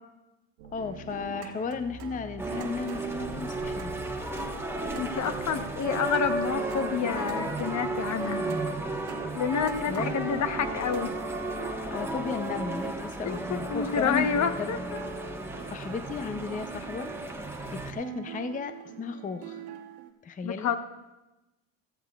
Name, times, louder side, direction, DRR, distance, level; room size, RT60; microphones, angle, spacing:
sound 1, 0.6-2.6 3.0-4.3 4.7-6.3, right 2 dB, 85° right, 1.5 m, -46 dB
voice 1, 0.7-4.0 9.9-10.4 11.9-14.3 14.6-14.7 15.7-17.1 17.7-19.6 20.2-20.7, left 5 dB, 20° left, 10 dB, 0.6 m, -35 dB
sound 2, 0.8-20.1, right 10 dB, 70° right, 1.2 m, -45 dB
sound 3, 2.4-17.9, right 2 dB, 5° right, 1.3 m, -34 dB
voice 2, 5.0-8.5 9.3-11.1 13.3-14.8 20.4-20.8, left 6 dB, 45° left, 9 dB, 1.1 m, -29 dB
15.0 x 14.5 x 2.4 m, 1.0 s
hypercardioid pair, 75°, 40 cm